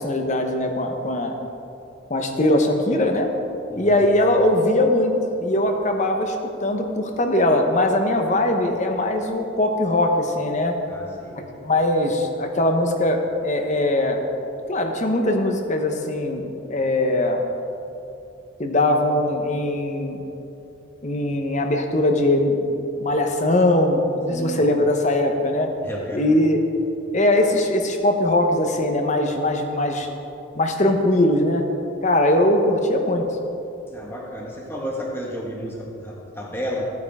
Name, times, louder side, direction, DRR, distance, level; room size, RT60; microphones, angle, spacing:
voice 1, 0.0-1.3 2.1-3.3 3.7-5.1 5.4-6.4 6.6-10.8 11.3-14.2 14.7-17.4 18.6-20.2 21.0-22.7 23.0-25.7 26.1-26.6 27.1-30.1 30.5-31.6 32.0-33.3, left 1 dB, 35° left, 4 dB, 0.9 m, -21 dB
voice 2, 10.9-11.4 24.3-24.6 25.8-26.4 33.9-36.8, equal, 10° left, -3 dB, 1.5 m, -32 dB
15.0 x 9.4 x 3.6 m, 2.8 s
head